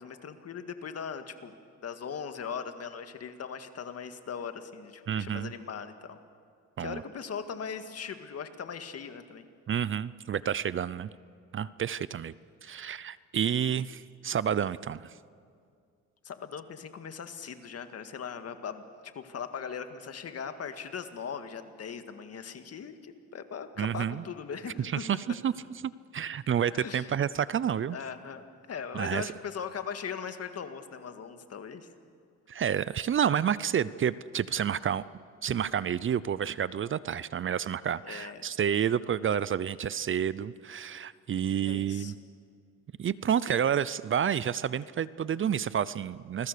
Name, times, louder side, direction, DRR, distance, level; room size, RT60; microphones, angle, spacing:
voice 1, 0.0-1.5 1.8-6.2 6.8-9.5 16.2-25.0 26.7-27.1 27.9-31.9 38.0-38.4 41.6-42.1, left 6 dB, 55° left, 8 dB, 2.0 m, -39 dB
voice 2, 5.1-5.5 6.8-7.0 9.7-11.1 11.5-12.3 12.6-15.1 23.8-24.2 24.8-25.5 25.8-28.0 28.9-29.3 32.5-35.0 35.4-42.1 43.0-46.5, right 8 dB, 40° right, 18 dB, 0.6 m, -29 dB
28.5 x 21.0 x 6.8 m, 2.2 s
cardioid pair, 90°, 30 cm